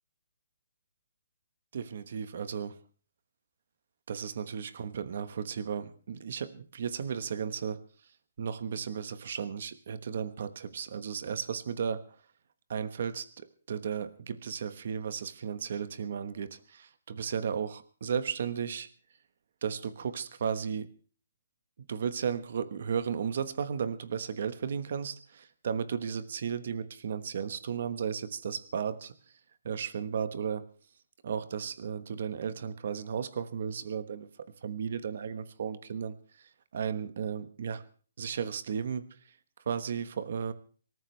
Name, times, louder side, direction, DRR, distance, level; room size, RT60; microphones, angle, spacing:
voice 1, 1.7-2.8 4.1-7.8 8.4-12.0 12.7-18.9 19.6-20.9 21.8-29.2 29.6-30.6 31.2-34.3 34.6-37.8 38.2-39.1 39.7-40.5, right 7 dB, 40° right, 13 dB, 1.2 m, -34 dB
25.0 x 14.0 x 3.4 m, 0.41 s
hypercardioid pair, 180°, 0 cm